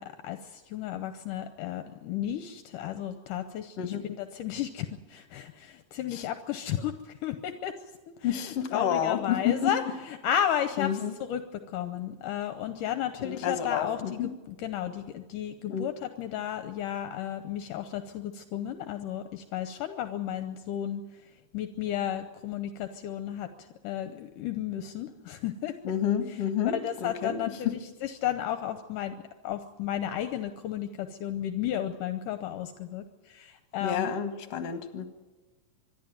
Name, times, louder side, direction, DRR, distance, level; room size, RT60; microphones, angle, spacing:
voice 1, 0.0-7.7 8.2-21.0 21.5-25.8 26.3-26.4 26.7-34.1, left 10 dB, 75° left, 9 dB, 2.3 m, -33 dB
voice 2, 8.2-9.7 10.8-11.1 13.2-14.3 15.7-15.9 25.8-26.8 27.0-27.4 27.6-27.7 33.8-35.1, left 9 dB, 55° left, 8 dB, 2.3 m, -29 dB
25.0 x 11.5 x 9.3 m, 1.2 s
omnidirectional pair, 4.0 m